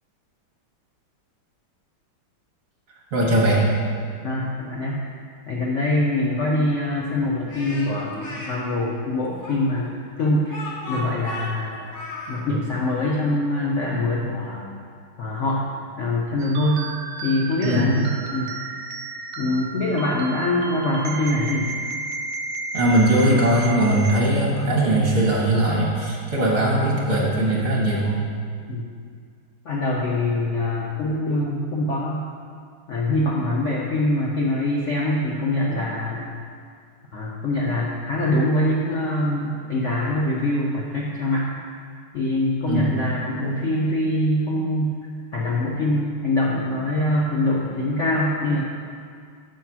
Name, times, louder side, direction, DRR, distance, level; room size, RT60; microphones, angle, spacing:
voice 1, 3.1-3.7 17.6-17.8 22.7-28.2 42.7-42.9, right 1 dB, 45° right, -4 dB, 1.5 m, -20 dB
voice 2, 4.2-5.1 5.5-9.9 10.2-11.8 12.3-14.7 15.2-15.7 16.0-16.9 17.2-18.5 19.4-21.7 28.7-28.8 29.6-32.3 32.9-36.3 37.1-41.6 42.1-45.0 45.3-48.6, left 1 dB, 85° left, -4 dB, 0.6 m, -24 dB
Speech, 7.5-8.5 9.4-12.4, left 1 dB, 50° left, 1.2 m, -35 dB
sound 1, 16.4-24.2, right 3 dB, 75° right, 0.9 m, -33 dB
7.0 x 4.0 x 6.0 m, 2.1 s
omnidirectional pair, 2.2 m